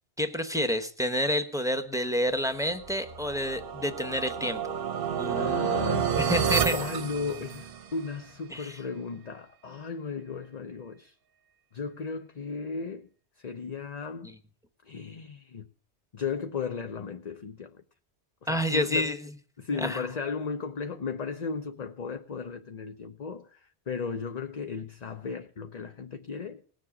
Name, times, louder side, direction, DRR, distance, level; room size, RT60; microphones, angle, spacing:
voice 1, 0.2-4.6 5.2-5.7 6.2-6.7 8.5-8.8 14.2-14.3 18.5-19.2 19.8-20.1, equal, 5° right, 1.0 m, -29 dB
sound 1, 2.8-8.0, right 7 dB, 55° right, 0.9 m, -30 dB
voice 2, 5.2-11.1 11.7-13.1 13.4-14.3 14.8-15.7 16.1-17.7 18.4-19.1 19.6-26.6, left 5 dB, 40° left, 0.8 m, -35 dB
19.0 x 7.5 x 7.2 m
omnidirectional pair, 1.1 m